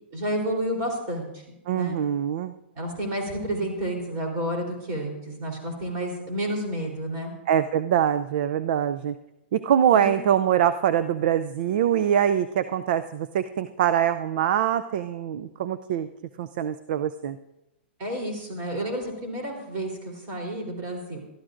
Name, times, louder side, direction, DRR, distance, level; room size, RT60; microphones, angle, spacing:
voice 1, 0.1-1.3 1.7-2.0 2.8-7.4 9.9-10.1 18.0-21.2, right 1 dB, 35° right, 1 dB, 3.5 m, -30 dB
voice 2, 1.7-2.5 7.5-9.1 9.5-16.1 16.4-17.4, right 9 dB, 55° right, 12 dB, 0.4 m, -24 dB
21.0 x 12.5 x 2.5 m, 0.91 s
hypercardioid pair, 155°, 6 cm